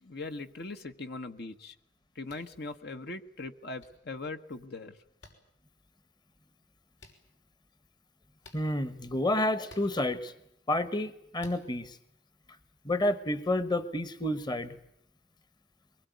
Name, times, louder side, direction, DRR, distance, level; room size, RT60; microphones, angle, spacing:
voice 1, 0.0-1.7 2.1-5.0, left 2 dB, 55° left, 7 dB, 1.3 m, -40 dB
sound 1, 2.2-2.5 3.8-3.9 5.2-5.3 7.0-7.1 8.4-8.6 9.6-9.9 11.4-11.6, left 2 dB, 80° left, 6.0 m, -51 dB
voice 2, 8.5-10.3 10.7-12.0 12.8-14.7, left 1 dB, 25° left, 13 dB, 1.2 m, -30 dB
23.5 x 21.5 x 9.4 m, 0.75 s
head